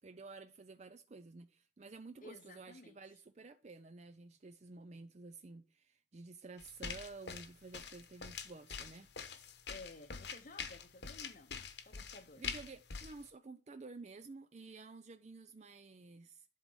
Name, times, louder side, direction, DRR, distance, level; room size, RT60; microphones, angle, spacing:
voice 1, 0.0-9.1 12.4-16.5, right 3 dB, 35° right, 0.4 m, -52 dB
voice 2, 2.2-3.2 9.7-11.5 11.8-12.4, left 2 dB, 40° left, 0.7 m, -54 dB
sound 1, 6.6-13.2, left 6 dB, 60° left, 1.0 m, -45 dB
11.0 x 4.0 x 6.2 m
head